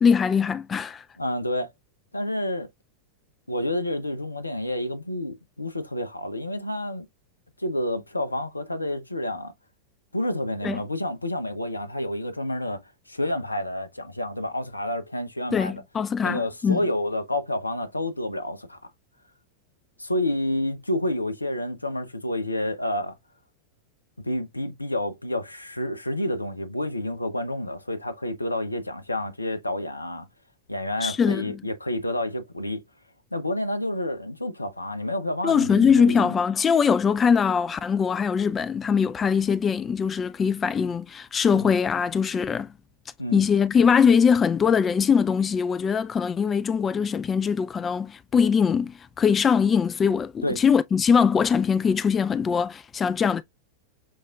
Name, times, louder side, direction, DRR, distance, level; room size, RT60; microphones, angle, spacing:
voice 1, 0.0-1.0 10.6-10.8 15.5-16.8 31.0-31.6 35.4-42.7 43.3-53.4, left 6 dB, 20° left, 0.3 m, -22 dB
voice 2, 1.2-1.7 2.1-2.7 3.5-7.1 7.6-9.5 10.1-12.8 13.1-15.8 16.2-18.8 20.0-23.2 24.2-30.3 30.7-32.8 33.3-36.3 41.5-41.7 43.2-43.4 50.4-50.6, left 1 dB, 85° left, 0.7 m, -29 dB
6.3 x 3.5 x 2.3 m
figure-of-eight pair, 90°, 0 cm